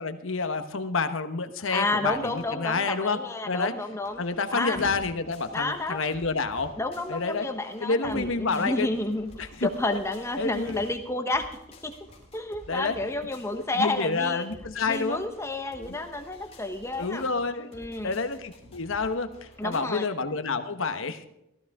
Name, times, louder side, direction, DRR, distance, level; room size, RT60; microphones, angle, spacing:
voice 1, 0.0-3.2 3.4-3.7 4.2-6.7 7.1-7.5 7.8-8.9 9.4-9.7 10.4-10.8 12.7-12.9 13.7-15.2 15.8-15.9 17.0-17.7 18.0-21.3, left 4 dB, 70° left, 9 dB, 1.1 m, -29 dB
voice 2, 1.7-4.2 4.5-4.8 5.5-6.0 6.8-11.5 11.8-11.9 12.3-14.5 14.9-17.2 17.7-18.1 19.6-20.1, left 2 dB, 15° left, 6 dB, 0.9 m, -30 dB
sound 1, 2.0-2.5 4.0-4.4 4.7-5.2 6.4-6.9 8.0-8.5 9.2-9.8 10.6-11.0 12.0-12.4 12.9-13.2 14.5-14.8 16.9-17.0 17.9-18.2 18.6-19.0, left 1 dB, 65° right, 3.9 m, -46 dB
sound 2, 4.2-19.8, left 1 dB, 30° left, 2.4 m, -53 dB
15.5 x 14.0 x 3.5 m, 0.85 s
head